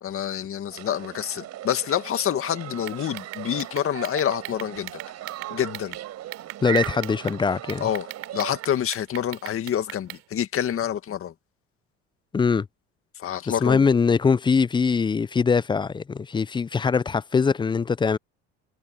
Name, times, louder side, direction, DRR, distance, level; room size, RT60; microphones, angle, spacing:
voice 1, 0.0-4.9 5.5-6.0 7.8-11.3 13.2-13.9, left 10 dB, 45° left, 2.0 m, -27 dB
sound 1, 0.7-8.7, right 14 dB, 60° right, 4.8 m, -37 dB
sound 2, 2.9-6.0 6.3-7.4 7.7-10.2, right 24 dB, 90° right, 5.1 m, -39 dB
voice 2, 6.6-7.9 12.3-12.7 13.6-18.2, left 5 dB, 15° left, 0.4 m, -22 dB
supercardioid pair, 90°, 30 cm